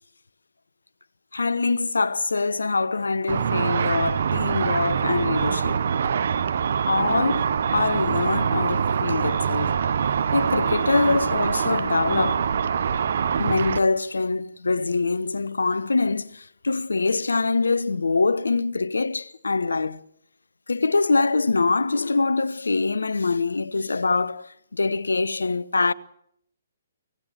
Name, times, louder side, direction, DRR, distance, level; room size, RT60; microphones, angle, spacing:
voice 1, 1.3-5.8 6.9-9.8 10.3-12.5 13.4-20.0 20.7-25.9, left 3 dB, 70° left, 0.9 m, -24 dB
Car / Traffic noise roadway noise / Engine, 3.3-13.8, right 7 dB, 50° right, 1.1 m, -24 dB
25.0 x 18.0 x 7.5 m
figure-of-eight pair, 130°, 0 cm